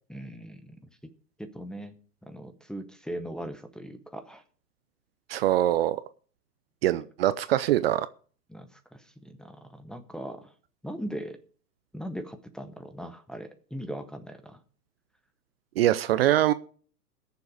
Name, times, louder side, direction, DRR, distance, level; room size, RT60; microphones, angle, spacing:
voice 1, 0.1-0.8 1.4-1.9 2.2-4.4 8.5-10.5 10.8-11.4 11.9-14.6, equal, ahead, 6 dB, 0.7 m, -39 dB
voice 2, 5.3-6.0 6.8-8.1 15.8-16.5, right 13 dB, 40° right, 14 dB, 0.6 m, -23 dB
19.5 x 7.0 x 4.9 m, 0.43 s
hypercardioid pair, 115°, 49 cm